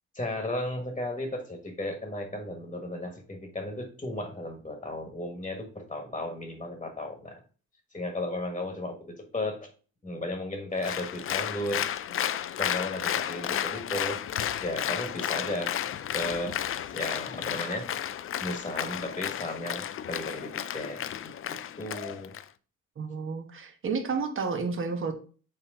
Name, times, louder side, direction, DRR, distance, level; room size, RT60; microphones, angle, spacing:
voice 1, 0.1-7.4 7.9-9.7 10.0-11.8 12.6-14.2 14.6-15.7 16.1-16.5 16.9-22.3, left 1 dB, 20° left, 4 dB, 1.5 m, -35 dB
Applause, 10.8-22.4, left 10 dB, 45° left, 0.5 m, -32 dB
voice 2, 23.0-25.1, right 4 dB, 45° right, 5 dB, 1.3 m, -31 dB
6.4 x 4.3 x 3.7 m, 0.38 s
cardioid pair, 90°, 30 cm